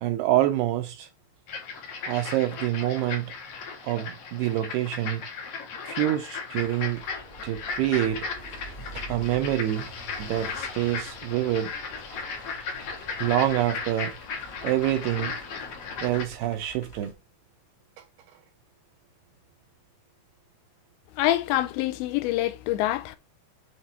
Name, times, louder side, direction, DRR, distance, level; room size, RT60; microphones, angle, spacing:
voice 1, 0.0-1.1 2.1-3.3 3.8-5.2 5.9-7.0 7.4-8.3 9.0-9.9 10.2-11.7 13.2-14.1 14.6-15.4 16.0-17.1, right 13 dB, 80° right, 2.5 m, -26 dB
sound 1, 1.5-16.2, left 5 dB, 70° left, 1.5 m, -36 dB
sound 2, 6.6-17.1, right 1 dB, 35° left, 0.9 m, -47 dB
voice 2, 21.2-23.2, left 14 dB, 85° left, 3.0 m, -25 dB
8.3 x 3.4 x 4.4 m
omnidirectional pair, 5.1 m